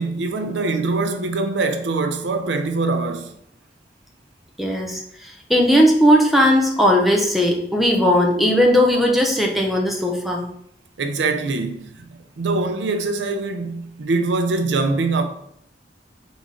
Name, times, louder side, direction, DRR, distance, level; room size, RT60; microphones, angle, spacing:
voice 1, 0.0-3.3 11.0-12.1 12.4-15.2, right 3 dB, 90° right, 0.5 m, -23 dB
voice 2, 4.6-10.4, equal, ahead, 0.6 m, -17 dB
4.0 x 3.6 x 3.7 m
head